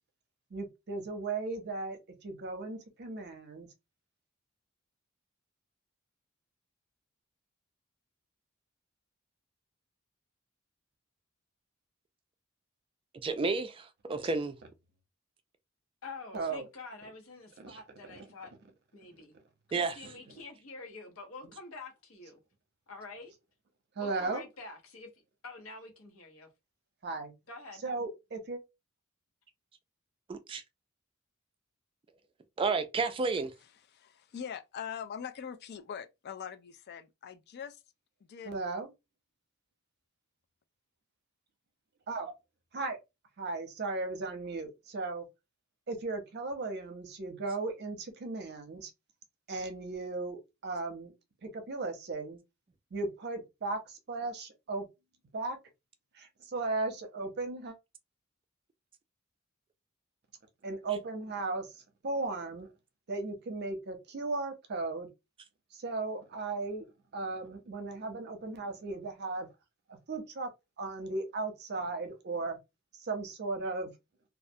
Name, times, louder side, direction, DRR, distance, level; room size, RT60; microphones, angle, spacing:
voice 1, 0.5-3.7 16.3-16.7 17.6-17.7 24.0-24.4 27.0-27.3 27.8-28.6 38.5-38.9 42.1-42.3 42.7-43.0 43.4-45.2 45.9-48.9 49.5-51.1 51.4-52.4 52.9-54.8 55.3-55.6 56.1-57.7 60.6-61.8 62.0-62.7 63.1-65.1 65.7-66.9 67.1-69.5 70.1-70.5 70.8-72.6 73.0-73.9, right 3 dB, 55° right, 0.7 m, -36 dB
voice 2, 13.2-14.6 19.7-19.9 30.3-30.6 32.6-33.5, right 4 dB, 25° right, 0.3 m, -31 dB
voice 3, 16.0-18.5 18.9-19.3 19.7-22.4 22.9-23.3 24.0-25.1 25.4-26.5 27.5-27.8, left 3 dB, 85° left, 0.9 m, -47 dB
voice 4, 33.9-37.8 38.2-38.5, left 7 dB, 50° left, 0.3 m, -42 dB
2.3 x 2.2 x 2.6 m
head